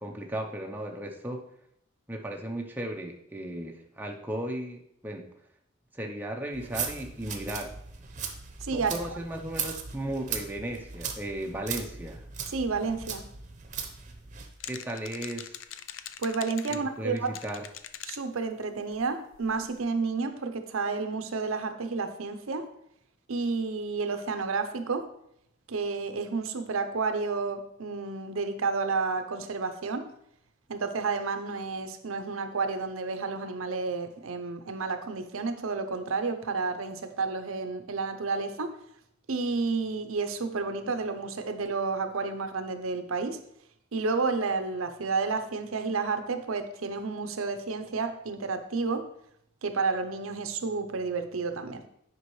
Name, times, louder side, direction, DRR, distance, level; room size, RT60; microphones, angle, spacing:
voice 1, 0.0-1.4 2.1-5.3 5.9-7.7 8.7-12.2 14.7-15.5 16.7-17.7, right 1 dB, 10° right, 1 dB, 0.6 m, -36 dB
sound 1, 6.5-14.5, right 6 dB, 35° right, 0.8 m, -38 dB
voice 2, 8.6-8.9 12.5-13.2 16.2-17.3 18.1-22.7 23.3-25.1 25.7-30.1 30.7-38.7 39.3-43.4 43.9-49.1 49.6-51.8, right 4 dB, 80° right, 8 dB, 0.7 m, -31 dB
sound 2, 14.6-16.8 17.2-18.2 18.6-18.7 18.9-19.0 19.3-19.8, left 10 dB, 65° left, 0.4 m, -42 dB
9.5 x 5.2 x 3.1 m, 0.73 s
head